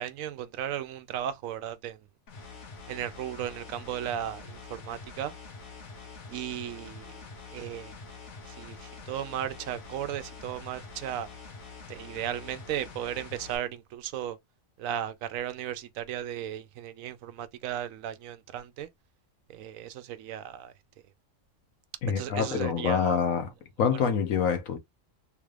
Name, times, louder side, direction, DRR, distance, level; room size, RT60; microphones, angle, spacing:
voice 1, 0.0-2.0 2.9-5.3 6.3-7.2 7.5-7.9 8.5-11.3 11.9-14.4 14.8-18.9 19.5-20.7 22.2-23.2 23.8-24.0, right 10 dB, 85° right, 1.0 m, -35 dB
sound 1, 2.3-13.6, left 4 dB, 65° left, 1.4 m, -45 dB
voice 2, 22.0-23.5 23.8-24.8, left 7 dB, 85° left, 1.2 m, -26 dB
3.6 x 2.4 x 3.2 m
omnidirectional pair, 1.4 m